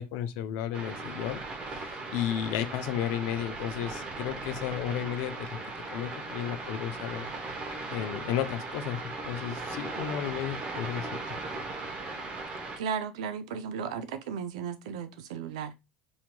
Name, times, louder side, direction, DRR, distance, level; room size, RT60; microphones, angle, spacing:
voice 1, 0.0-1.4 1.7-5.6 5.9-7.3 7.9-11.1, left 10 dB, 70° left, 0.5 m, -33 dB
sound 1, 0.7-12.8, right 3 dB, 35° right, 0.9 m, -38 dB
voice 2, 12.8-15.7, right 7 dB, 80° right, 0.5 m, -35 dB
2.9 x 2.7 x 2.2 m
supercardioid pair, 90°, 3 cm